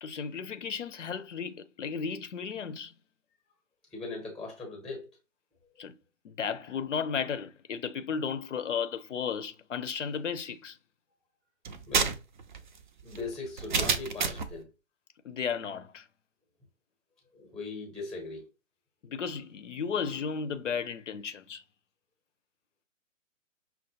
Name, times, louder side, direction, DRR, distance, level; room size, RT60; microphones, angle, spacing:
voice 1, 0.0-2.9 5.8-5.9 6.2-10.8 15.2-16.1 19.0-21.6, left 6 dB, 65° left, 0.6 m, -34 dB
voice 2, 3.9-5.1 11.9-12.2 13.0-14.7 17.3-18.4, left 3 dB, ahead, 0.7 m, -39 dB
sound 1, 11.6-14.6, right 5 dB, 40° right, 0.4 m, -30 dB
5.6 x 2.1 x 2.9 m
figure-of-eight pair, 130°, 39 cm